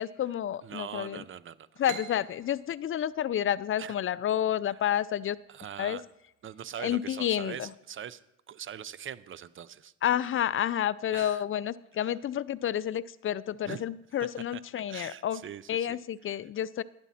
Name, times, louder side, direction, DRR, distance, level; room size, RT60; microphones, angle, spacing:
voice 1, 0.0-1.2 1.8-5.4 5.8-6.0 6.8-7.7 10.0-15.4 15.7-16.8, left 10 dB, 45° left, 19 dB, 0.4 m, -30 dB
voice 2, 0.6-1.8 3.8-3.9 5.5-6.0 6.4-9.9 11.1-11.4 12.0-12.1 13.7-13.8 14.5-14.6 14.9-16.0, right 9 dB, 40° right, 18 dB, 0.6 m, -42 dB
sound 1, 1.8-5.3, right 9 dB, 80° right, 1.0 m, -47 dB
11.5 x 10.5 x 4.2 m, 0.89 s
cardioid pair, 90°, 30 cm